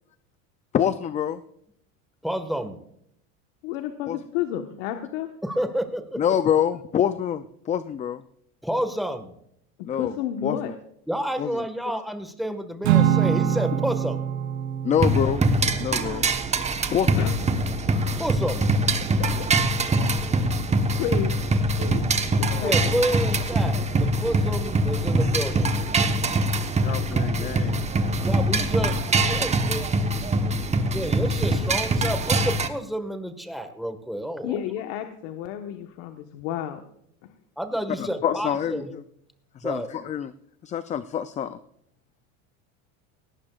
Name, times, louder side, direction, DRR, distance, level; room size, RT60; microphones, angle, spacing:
voice 1, 0.7-1.4 4.1-4.2 6.2-8.2 9.9-10.1 10.4-10.6 11.4-11.6 14.8-15.4 15.8-16.3 16.9-17.1 20.0-20.1 22.5-22.7 26.8-27.8 38.0-39.0 39.6-40.3 40.6-41.6, left 9 dB, 20° left, 13 dB, 0.4 m, -26 dB
voice 2, 2.2-2.8 5.4-6.2 8.6-9.4 11.1-14.3 18.2-18.7 22.6-25.7 28.2-29.8 30.9-34.6 37.6-38.9 39.6-39.9, equal, ahead, 7 dB, 1.6 m, -29 dB
voice 3, 3.6-5.3 9.8-10.7 17.2-17.4 19.2-19.5 20.9-22.1 22.4-22.9 34.4-36.8, left 10 dB, 65° left, 5 dB, 1.4 m, -31 dB
Acoustic guitar / Strum, 12.8-17.3, right 9 dB, 70° right, 3.0 m, -25 dB
sound 1, 15.0-32.7, right 2 dB, 15° right, 1.1 m, -23 dB
18.0 x 16.5 x 2.4 m, 0.72 s
supercardioid pair, 125°, 42 cm